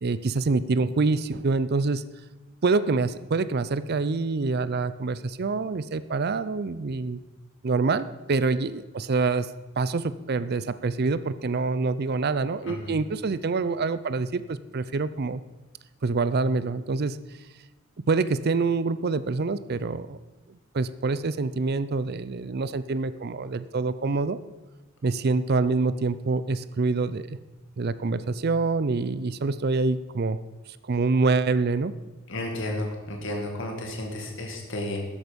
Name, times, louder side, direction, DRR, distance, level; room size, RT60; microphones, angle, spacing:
voice 1, 0.0-2.0 2.6-7.2 7.6-15.4 16.0-17.2 18.1-20.2 20.5-24.4 25.0-27.4 27.8-30.4 30.8-31.9, right 3 dB, 50° right, 14 dB, 0.5 m, -26 dB
voice 2, 12.7-13.0 32.3-35.0, left 1 dB, 65° left, 1 dB, 2.1 m, -32 dB
13.5 x 10.5 x 5.2 m, 1.1 s
head